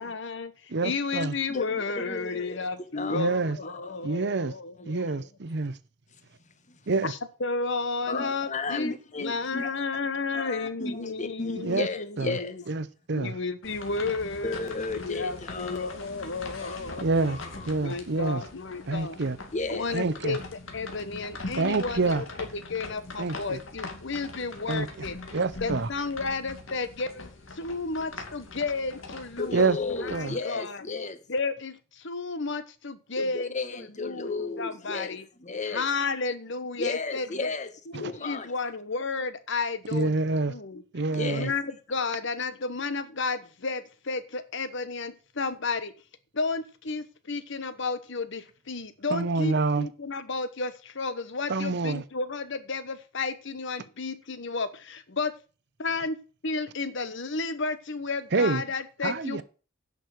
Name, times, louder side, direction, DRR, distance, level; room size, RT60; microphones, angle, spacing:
voice 1, 0.0-5.3 7.0-12.6 13.2-14.6 14.9-17.3 17.8-19.2 19.7-20.4 20.7-25.2 25.6-29.6 30.0-30.8 31.3-33.5 34.0-34.3 34.6-35.3 35.7-37.5 37.9-40.1 40.5-40.8 41.3-45.9 46.3-55.3 55.8-56.2 56.4-59.4, left 4 dB, 65° left, 1.2 m, -32 dB
voice 2, 0.7-1.3 3.1-3.6 4.0-4.5 4.8-5.8 6.9-7.1 11.6-11.9 12.2-12.4 12.7-13.4 17.0-17.4 17.7-18.4 18.9-19.4 19.9-20.4 21.6-22.2 23.2-23.6 24.7-25.1 25.3-25.9 29.5-29.8 30.1-30.4 39.9-40.5 40.9-41.5 49.1-49.9 51.5-52.0 58.3-58.6 59.0-59.4, right 3 dB, 60° right, 0.8 m, -27 dB
voice 3, 1.5-3.4 3.6-4.0 5.0-5.1 6.7-6.8 8.1-9.7 10.3-12.6 14.4-16.0 16.6-17.9 19.5-20.1 29.4-31.2 33.2-35.9 36.8-37.7 38.0-38.5 41.1-41.5, left 3 dB, 35° left, 1.2 m, -34 dB
sound 1, 13.6-30.4, left 3 dB, 80° left, 2.5 m, -42 dB
10.5 x 6.3 x 6.5 m
head